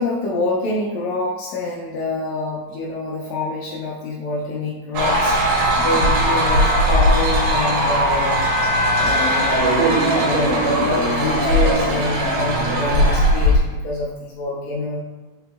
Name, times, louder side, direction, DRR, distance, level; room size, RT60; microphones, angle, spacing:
voice 1, 0.0-5.4 5.8-8.5 8.9-15.0, left 2 dB, 80° left, -2 dB, 1.5 m, -26 dB
sound 1, 4.9-13.6, equal, 80° right, 2.5 m, -18 dB
5.1 x 2.9 x 3.5 m, 1.2 s
omnidirectional pair, 3.7 m